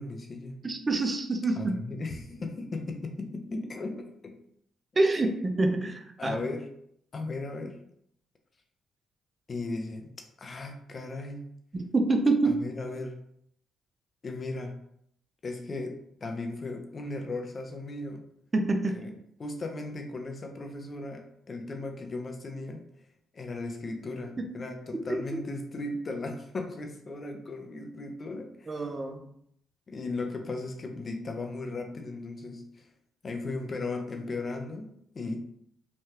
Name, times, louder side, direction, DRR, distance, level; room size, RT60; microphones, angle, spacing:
voice 1, 0.0-0.6 1.6-4.4 6.2-6.7 7.1-7.8 9.5-10.1 10.4-11.4 12.6-13.2 14.2-14.8 15.4-18.2 18.9-19.1 19.4-22.8 23.3-28.8 29.9-32.9 33.2-35.4, left 2 dB, 40° left, 4 dB, 0.5 m, -36 dB
voice 2, 0.6-1.7 4.9-6.4 11.7-12.6 18.5-19.0 24.4-24.5 28.7-29.3, right 2 dB, 30° right, 4 dB, 0.5 m, -26 dB
3.2 x 2.2 x 2.8 m, 0.69 s
cardioid pair, 90°, 0 cm